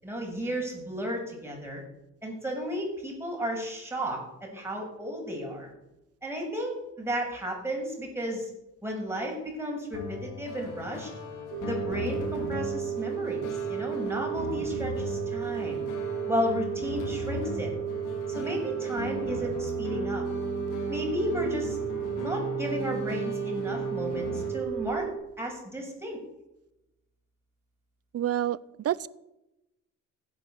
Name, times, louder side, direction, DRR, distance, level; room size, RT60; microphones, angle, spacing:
voice 1, 0.0-1.8 2.2-5.7 6.2-8.5 8.8-11.1 11.6-13.4 13.7-15.9 16.3-17.7 18.3-20.2 20.9-21.8 22.2-25.1 25.4-26.2, equal, 10° right, -1 dB, 7.6 m, -33 dB
sound 1, 9.9-24.5, left 4 dB, 90° left, 3.8 m, -38 dB
sound 2, 11.5-25.1, right 10 dB, 90° right, 1.8 m, -33 dB
voice 2, 28.1-29.1, right 11 dB, 55° right, 20 dB, 0.7 m, -28 dB
15.5 x 10.5 x 8.0 m, 0.92 s
cardioid pair, 90°, 30 cm